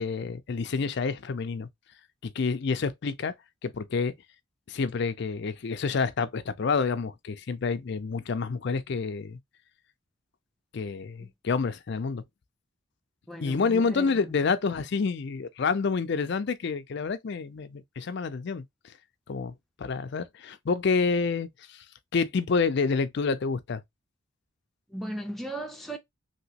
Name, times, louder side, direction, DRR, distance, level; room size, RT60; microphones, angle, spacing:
voice 1, 0.0-1.7 2.2-3.3 3.6-4.1 4.7-9.4 10.7-12.2 13.4-18.6 19.3-21.8 22.1-23.8, left 4 dB, 55° left, 0.4 m, -28 dB
voice 2, 13.3-14.4 24.9-26.0, right 1 dB, ahead, 0.6 m, -37 dB
2.9 x 2.9 x 2.8 m
head